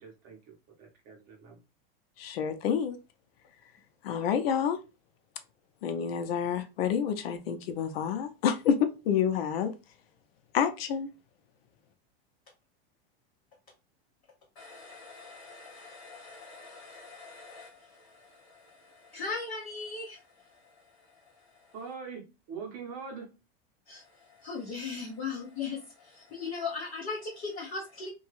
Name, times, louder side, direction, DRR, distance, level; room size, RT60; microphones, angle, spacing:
voice 1, 0.0-1.6 21.7-23.3, right 5 dB, 30° right, 0.7 m, -43 dB
voice 2, 2.2-3.0 4.0-4.8 5.8-9.7 10.5-11.1, left 8 dB, 70° left, 0.6 m, -28 dB
voice 3, 14.6-21.7 23.9-28.1, left 4 dB, 20° left, 0.4 m, -40 dB
2.8 x 2.3 x 2.9 m
supercardioid pair, 175°, 30 cm